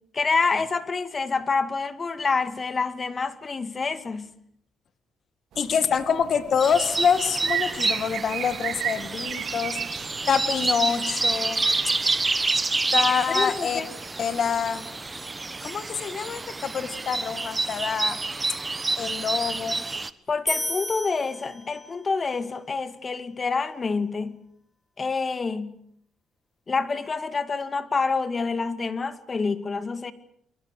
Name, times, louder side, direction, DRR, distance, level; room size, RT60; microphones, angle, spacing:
voice 1, 0.1-4.3 13.3-13.9 20.3-24.4 25.0-25.8 26.7-30.1, left 4 dB, 35° left, 2.1 m, -27 dB
sound 1, 5.5-12.4, right 10 dB, 75° right, 1.8 m, -36 dB
voice 2, 5.6-11.6 12.9-13.8 14.2-14.8 15.6-18.2 19.0-19.8, left 7 dB, 55° left, 2.1 m, -26 dB
sound 2, 6.6-20.1, right 3 dB, 25° right, 1.3 m, -28 dB
sound 3, 20.5-22.1, left 1 dB, 10° left, 2.5 m, -32 dB
30.0 x 22.5 x 6.7 m
cardioid pair, 90°, 0 cm